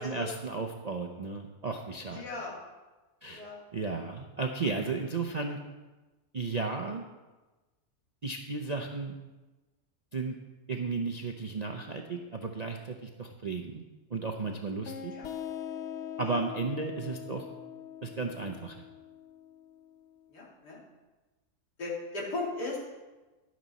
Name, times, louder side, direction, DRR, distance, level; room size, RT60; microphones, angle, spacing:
voice 1, 0.0-2.2 3.2-3.4 3.7-5.6 6.3-7.0 8.2-9.1 10.1-10.4 10.7-13.8 14.1-15.1 16.2-17.4 18.0-18.8, right 4 dB, 50° right, 2 dB, 0.4 m, -34 dB
voice 2, 2.1-2.6 3.2-3.6 5.3-5.4 15.1-15.3 16.3-16.4 20.3-20.8 21.8-22.8, left 2 dB, 90° left, -4 dB, 3.1 m, -37 dB
sound 1, 14.8-20.2, left 9 dB, 60° left, 0.8 m, -42 dB
12.0 x 9.4 x 4.1 m, 1.2 s
omnidirectional pair, 1.7 m